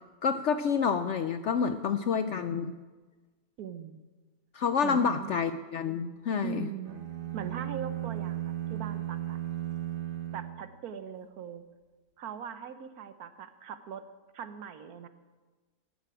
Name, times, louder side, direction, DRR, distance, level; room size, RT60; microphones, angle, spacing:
voice 1, 0.2-2.8 4.5-6.7, left 6 dB, 65° left, 10 dB, 0.7 m, -28 dB
voice 2, 3.6-4.0 4.8-5.3 6.4-7.0 7.3-9.4 10.3-11.6 12.2-14.0 14.3-15.1, right 7 dB, 70° right, 11 dB, 1.3 m, -40 dB
sound 1, 6.9-11.2, right 12 dB, 40° right, 0.9 m, -36 dB
11.5 x 9.6 x 8.8 m, 1.3 s
omnidirectional pair, 1.7 m